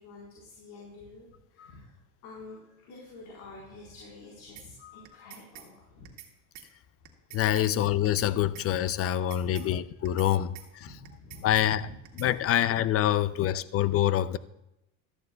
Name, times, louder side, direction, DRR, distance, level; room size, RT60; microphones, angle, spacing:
voice 1, 0.0-1.9 2.2-6.2 7.5-7.9 9.3-9.7 10.0-10.3 10.8-11.9 13.1-13.3, left 3 dB, 75° left, 4.2 m, -49 dB
sound 1, 4.6-4.7 5.0-5.7 6.0-6.3 6.5-6.7 7.0-7.7 8.0-8.3 8.5-8.7 9.0-9.7 10.0-10.3 10.5-10.7 11.0-11.7 12.0-12.3, right 12 dB, 65° right, 1.9 m, -47 dB
voice 2, 7.3-10.9 11.4-11.9 12.2-14.4, left 11 dB, 35° left, 0.5 m, -26 dB
13.5 x 13.5 x 2.3 m
supercardioid pair, 105°, 42 cm